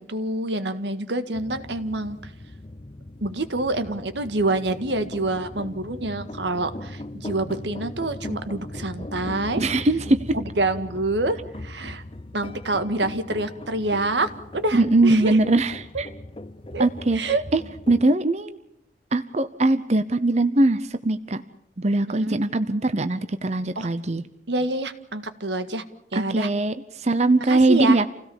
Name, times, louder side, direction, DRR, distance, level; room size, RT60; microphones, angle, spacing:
voice 1, 0.0-2.2 3.2-9.6 10.3-12.0 12.3-15.4 16.7-16.9 17.1-17.4 22.1-22.4 23.8-23.9 24.5-25.8 26.1-26.5 27.5-28.1, right 2 dB, 80° right, 10 dB, 1.8 m, -27 dB
sound 1, 1.3-18.1, left 1 dB, 30° left, 0.7 m, -39 dB
voice 2, 9.6-10.4 14.7-16.1 16.8-17.2 17.5-17.6 17.9-18.6 19.1-21.4 21.8-24.2 26.1-28.1, right 2 dB, 40° right, 11 dB, 0.8 m, -21 dB
27.5 x 17.0 x 7.2 m, 0.81 s
head